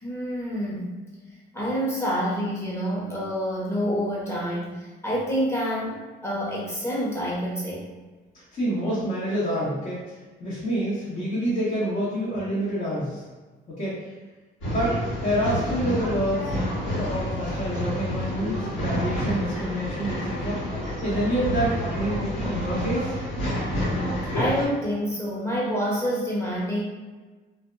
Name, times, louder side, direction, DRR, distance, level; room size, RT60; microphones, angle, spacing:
voice 1, 0.0-0.9 1.5-6.0 6.2-7.8 24.3-26.8, equal, 15° left, -5 dB, 0.9 m, -27 dB
voice 2, 8.5-13.2 13.7-14.1 14.6-16.5 17.0-23.1, equal, 45° left, -11 dB, 1.0 m, -27 dB
Male speech man speaking / Chatter / Rattle, 14.6-24.7, equal, 75° left, 1.3 m, -29 dB
2.5 x 2.2 x 2.5 m, 1.3 s
cardioid pair, 90°, 20 cm